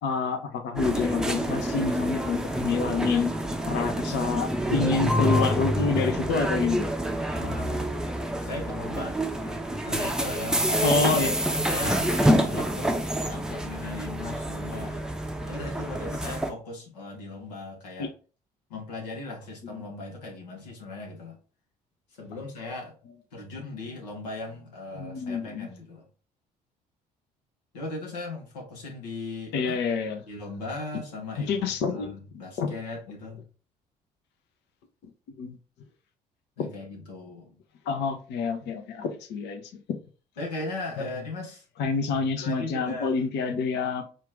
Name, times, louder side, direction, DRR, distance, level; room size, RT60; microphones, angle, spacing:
voice 1, 0.0-3.3 3.7-6.9 10.8-11.4 18.0-18.1 24.9-25.7 29.5-30.2 31.5-32.1 32.6-32.7 35.4-35.6 37.9-39.6 41.0-41.1 41.8-44.1, left 4 dB, 55° left, 0.7 m, -27 dB
sound 1, 0.8-16.5, equal, 5° right, 0.6 m, -27 dB
voice 2, 7.4-7.9 8.4-9.2 9.8-13.0 13.2-15.0 15.4-18.1 18.7-21.4 22.2-22.9 23.3-26.0 27.7-29.8 30.3-33.4 36.6-37.6 38.6-38.7 40.4-41.6 42.4-43.2, left 2 dB, 75° left, 1.2 m, -38 dB
4.5 x 2.5 x 3.6 m
figure-of-eight pair, 50°, 21 cm